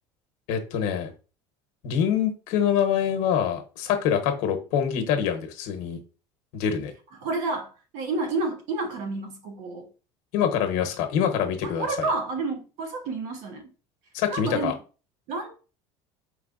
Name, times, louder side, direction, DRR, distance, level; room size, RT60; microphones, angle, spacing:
voice 1, 0.5-1.1 1.8-6.0 6.5-6.9 10.3-12.1 14.1-14.7, left 8 dB, 70° left, 0.9 m, -25 dB
voice 2, 7.2-9.9 11.6-13.7 14.3-14.7 15.3-15.5, right 3 dB, 70° right, 1.1 m, -30 dB
4.6 x 3.2 x 2.5 m
supercardioid pair, 120°, 13 cm